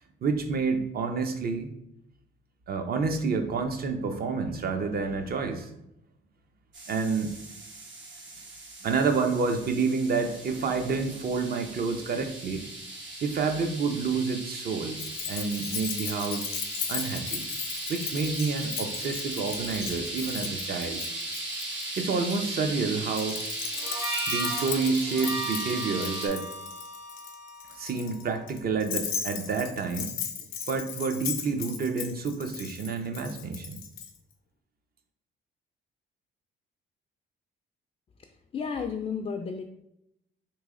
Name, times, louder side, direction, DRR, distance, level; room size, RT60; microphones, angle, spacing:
voice 1, 0.2-1.7 2.7-5.7 6.9-7.3 8.8-12.6 13.2-15.0 15.3-16.5 16.9-17.4 17.9-21.0 22.0-23.4 24.3-26.5 27.7-30.1 30.7-33.8, right 4 dB, 50° right, 6 dB, 0.6 m, -29 dB
sound 1, 6.7-26.3, right 1 dB, 70° right, 1.0 m, -37 dB
Keys jangling, 15.0-22.4 23.1-34.1, left 8 dB, 85° left, 0.6 m, -37 dB
Harmonica, 23.7-28.4, right 2 dB, 85° right, 1.3 m, -36 dB
voice 2, 38.5-39.6, left 6 dB, 30° left, 4 dB, 0.3 m, -32 dB
3.1 x 3.0 x 3.6 m, 0.81 s
cardioid pair, 90°, 20 cm